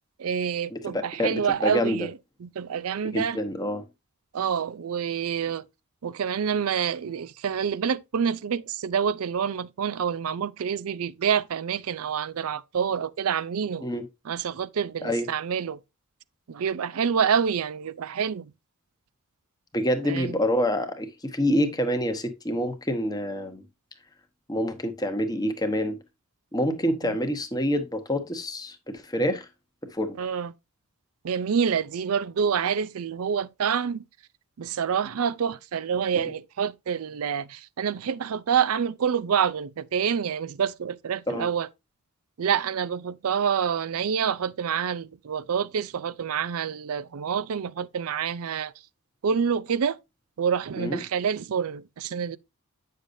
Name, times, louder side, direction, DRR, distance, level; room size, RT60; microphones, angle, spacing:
voice 1, 0.2-2.1 2.4-3.4 4.3-5.7 6.0-13.9 14.3-15.8 16.5-18.5 20.0-20.4 27.0-27.2 30.2-30.5 31.2-34.0 34.6-41.7 42.4-48.7 49.2-50.0 50.4-52.4, right 7 dB, 80° right, 0.4 m, -27 dB
voice 2, 0.7-2.0 3.0-3.8 13.8-14.0 15.0-15.3 19.7-23.6 24.5-26.0 26.5-29.5 29.9-30.2 36.1-36.3 41.3-41.5 50.8-51.0, equal, 15° left, 1.0 m, -27 dB
8.9 x 6.5 x 2.6 m
head